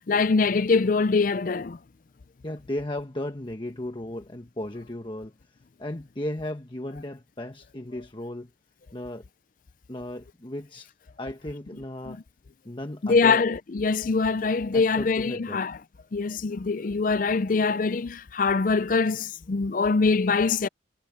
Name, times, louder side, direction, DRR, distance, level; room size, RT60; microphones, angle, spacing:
voice 1, 0.1-1.8 12.1-12.2 13.0-15.7 16.1-20.7, left 4 dB, 45° left, 0.5 m, -23 dB
voice 2, 2.4-8.5 8.9-9.3 9.9-10.9 11.2-12.2 12.6-13.5 14.7-15.6, left 1 dB, 25° left, 1.2 m, -35 dB
head